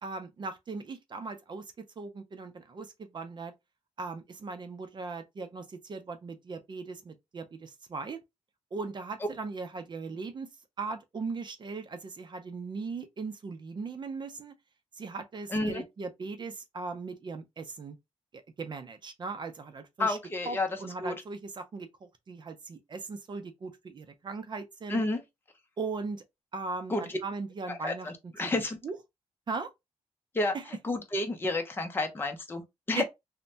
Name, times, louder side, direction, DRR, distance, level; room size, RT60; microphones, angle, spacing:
voice 1, 0.0-3.5 4.0-8.2 8.7-10.5 10.8-14.5 15.0-18.0 18.3-20.2 20.5-25.0 25.8-26.2 26.5-28.3 28.8-29.0 29.5-29.7 30.5-30.6 32.9-33.0, right 4 dB, 40° right, 0.5 m, -38 dB
voice 2, 15.5-15.8 20.0-20.7 21.0-21.2 24.9-25.2 26.9-27.1 27.7-28.8 30.3-30.5 30.8-33.0, left 2 dB, 20° left, 0.6 m, -30 dB
3.2 x 2.1 x 2.6 m
cardioid pair, 100°, 11 cm